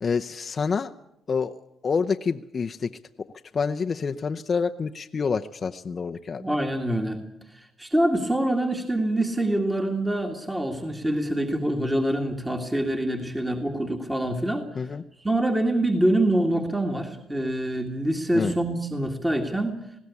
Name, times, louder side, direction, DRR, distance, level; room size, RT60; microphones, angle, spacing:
voice 1, 0.0-0.9 1.3-1.6 1.8-2.9 3.5-6.4 14.8-15.0 18.3-18.5, left 5 dB, 40° left, 5 dB, 0.7 m, -27 dB
voice 2, 6.3-7.2 7.5-14.6 15.2-19.8, right 1 dB, 10° right, 3 dB, 2.0 m, -25 dB
20.5 x 16.5 x 8.4 m, 0.79 s
cardioid pair, 90°, 0 cm